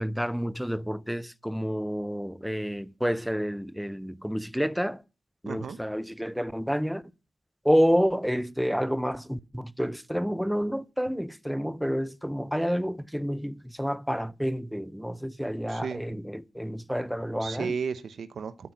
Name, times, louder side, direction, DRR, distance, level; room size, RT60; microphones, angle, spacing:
voice 1, 0.0-5.0 5.4-7.0 7.6-17.8, equal, ahead, 0.5 m, -29 dB
voice 2, 5.5-5.8 15.7-16.0 17.4-18.7, right 6 dB, 65° right, 0.9 m, -34 dB
12.5 x 5.9 x 9.1 m
wide cardioid pair, 120°, 0 cm